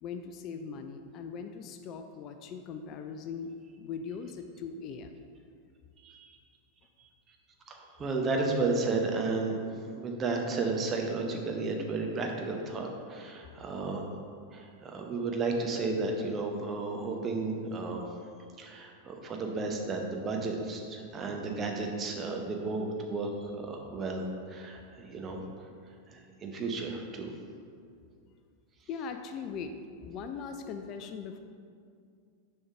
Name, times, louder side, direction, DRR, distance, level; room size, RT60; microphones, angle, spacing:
voice 1, 0.0-5.2 28.9-31.4, left 6 dB, 35° left, 7 dB, 0.3 m, -40 dB
voice 2, 7.7-14.1 14.5-18.0 18.6-25.4 26.1-27.3, right 3 dB, 25° right, 2 dB, 0.8 m, -33 dB
6.4 x 5.4 x 3.6 m, 2.3 s
figure-of-eight pair, 90°, 0 cm